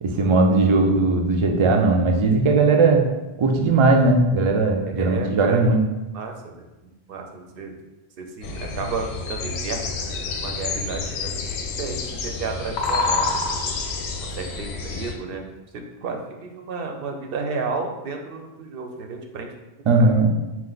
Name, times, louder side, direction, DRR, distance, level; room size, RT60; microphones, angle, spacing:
voice 1, 0.0-3.0 3.4-5.8 19.9-20.3, right 3 dB, 45° right, 3 dB, 0.4 m, -18 dB
voice 2, 5.0-5.6 6.1-6.7 7.1-7.8 8.2-11.3 11.8-13.8 14.2-15.5 15.7-19.5 20.0-20.1, right 4 dB, 65° right, 3 dB, 0.8 m, -32 dB
sound 1, 8.4-15.1, left 3 dB, 90° left, 0.8 m, -28 dB
4.4 x 2.5 x 3.8 m, 1.0 s
omnidirectional pair, 1.0 m